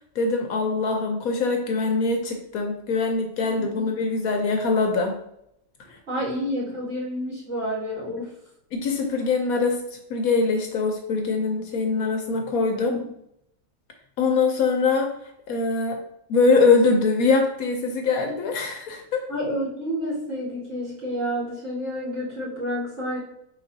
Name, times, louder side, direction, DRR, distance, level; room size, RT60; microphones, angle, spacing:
voice 1, 0.1-5.1 5.9-6.0 8.2-8.3 8.7-13.0 14.2-15.2 15.5-16.0 16.3-19.3, left 4 dB, 70° left, 4 dB, 1.0 m, -23 dB
voice 2, 6.1-8.3 12.8-13.1 19.3-23.2, equal, 45° right, -8 dB, 2.3 m, -29 dB
4.7 x 4.1 x 2.6 m, 0.77 s
omnidirectional pair, 1.7 m